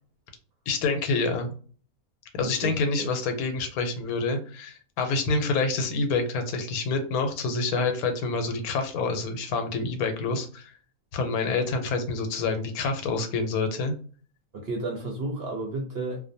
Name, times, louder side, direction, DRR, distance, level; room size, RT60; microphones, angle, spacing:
voice 1, 0.7-1.5 2.3-10.7 11.1-13.9, left 3 dB, 90° left, 1.1 m, -27 dB
voice 2, 2.4-3.1 14.5-16.2, right 2 dB, 60° right, 0.7 m, -32 dB
2.4 x 2.1 x 2.6 m
omnidirectional pair, 1.5 m